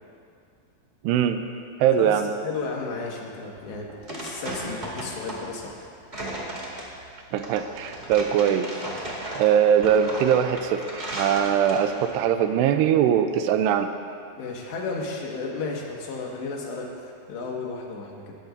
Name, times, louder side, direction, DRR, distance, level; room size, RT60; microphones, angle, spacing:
voice 1, 1.0-1.5 1.8-2.3 7.3-8.7 9.4-13.9, right 9 dB, 85° right, 8 dB, 2.7 m, -21 dB
voice 2, 1.9-3.9 4.2-5.9 14.4-18.4, left 4 dB, 85° left, -1 dB, 4.0 m, -33 dB
sound 1, 3.6-12.1, right 1 dB, 20° right, 1.9 m, -35 dB
21.5 x 16.0 x 2.7 m, 2.3 s
omnidirectional pair, 4.9 m